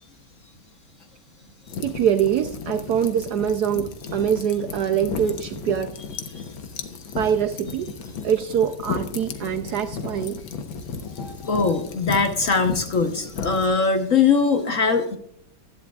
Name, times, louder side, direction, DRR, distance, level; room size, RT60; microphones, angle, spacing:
sound 1, 1.7-13.7, left 5 dB, 80° left, 1.9 m, -34 dB
voice 1, 1.8-6.0 7.1-8.0 8.2-10.4, right 9 dB, 70° right, 1.0 m, -24 dB
voice 2, 11.2-15.2, left 5 dB, 50° left, 1.1 m, -21 dB
15.5 x 11.5 x 2.3 m
omnidirectional pair, 2.2 m